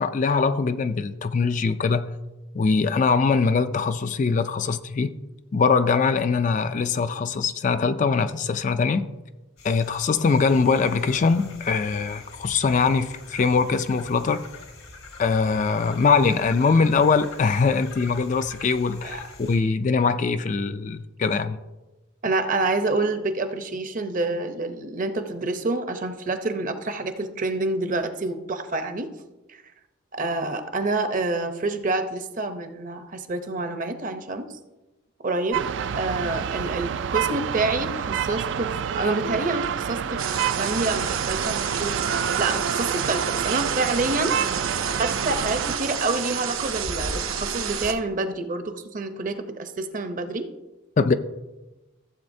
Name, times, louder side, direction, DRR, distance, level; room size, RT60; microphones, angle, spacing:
voice 1, 0.0-2.1 2.5-5.1 5.5-9.1 9.6-14.5 15.2-21.6 51.0-51.1, left 4 dB, 35° left, 10 dB, 0.3 m, -22 dB
sound 1, 9.6-19.6, left 3 dB, 85° left, 1.6 m, -44 dB
voice 2, 22.2-29.1 29.5-29.6 30.1-34.5 35.2-35.6 35.9-40.3 40.6-41.9 42.4-44.3 44.9-50.5, right 2 dB, 40° right, 7 dB, 0.7 m, -27 dB
sound 2, 35.5-45.8, right 7 dB, 60° right, 0.3 m, -28 dB
sound 3, 40.2-47.9, right 7 dB, 80° right, 0.8 m, -29 dB
15.0 x 7.7 x 2.7 m, 1.1 s
head